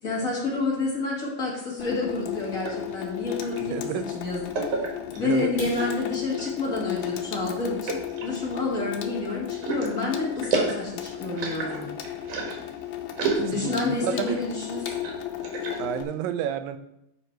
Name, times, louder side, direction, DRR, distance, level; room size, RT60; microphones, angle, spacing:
voice 1, 0.0-4.8 5.1-12.0 13.3-15.0, left 3 dB, 35° left, -4 dB, 1.5 m, -29 dB
Water tap faucet / Sink (filling or washing), 1.8-16.0, left 11 dB, 85° left, 2.6 m, -34 dB
sound 1, 2.3-3.7 4.5-5.4 6.1-6.6 7.1-7.2 7.8-8.9 9.5-12.7 13.1-14.4 14.7-16.0, right 3 dB, 60° right, 3.0 m, -31 dB
voice 2, 3.7-4.1 5.2-5.5 13.5-14.4 15.8-16.8, right 9 dB, 80° right, 10 dB, 2.3 m, -30 dB
sound 2, 5.5-9.2 9.8-10.0 10.4-10.5 10.9-11.1 11.4-11.5 12.0-12.1 12.3-12.8, left 2 dB, 50° left, 4.0 m, -45 dB
11.5 x 5.0 x 4.5 m, 0.80 s
omnidirectional pair, 4.1 m